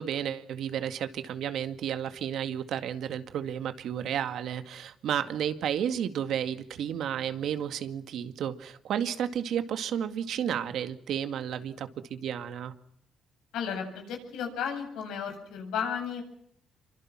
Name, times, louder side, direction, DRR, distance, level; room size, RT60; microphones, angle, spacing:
voice 1, 0.0-12.7, right 9 dB, 75° right, 9 dB, 2.1 m, -32 dB
voice 2, 13.5-16.2, left 7 dB, 90° left, 4 dB, 7.8 m, -33 dB
27.5 x 24.5 x 6.2 m, 0.68 s
cardioid pair, 90°, 0 cm